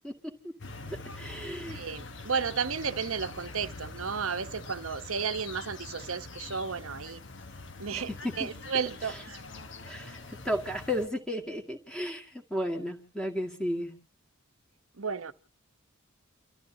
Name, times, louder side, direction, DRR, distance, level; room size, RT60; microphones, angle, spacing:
sound 1, 0.6-11.1, left 3 dB, 55° left, 1.3 m, -44 dB
voice 1, 1.2-1.8 7.9-8.0 8.4-8.5 9.9-10.2 10.4-13.9, equal, 5° left, 1.9 m, -33 dB
voice 2, 1.7-7.2 7.8-9.4 15.0-15.3, right 6 dB, 75° right, 1.0 m, -33 dB
30.0 x 13.5 x 2.7 m
head